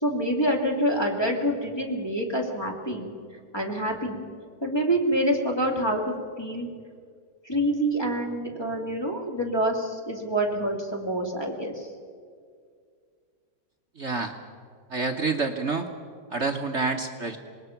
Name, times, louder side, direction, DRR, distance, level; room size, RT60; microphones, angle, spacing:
voice 1, 0.0-3.1 3.5-4.3 4.6-6.7 7.4-11.9, right 1 dB, 10° left, 0 dB, 2.4 m, -27 dB
voice 2, 14.0-14.3 14.9-15.9 16.3-17.4, right 4 dB, 45° right, 4 dB, 1.1 m, -28 dB
26.0 x 20.5 x 5.9 m, 2.1 s
omnidirectional pair, 2.2 m